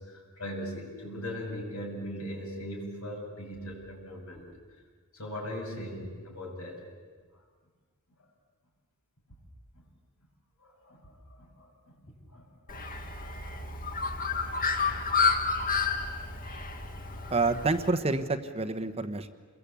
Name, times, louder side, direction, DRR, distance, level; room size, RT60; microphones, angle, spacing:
voice 1, 0.0-4.5 5.1-6.8 9.7-9.8 10.6-12.0 12.3-12.8 13.1-13.3 14.0-14.1 15.2-15.3 16.5-16.6, equal, 75° left, -2 dB, 7.4 m, -40 dB
Bird, 12.7-17.9, left 4 dB, 40° left, 2.0 m, -30 dB
voice 2, 17.3-19.3, right 3 dB, 30° right, 9 dB, 1.1 m, -28 dB
28.5 x 22.5 x 8.5 m, 1.6 s
head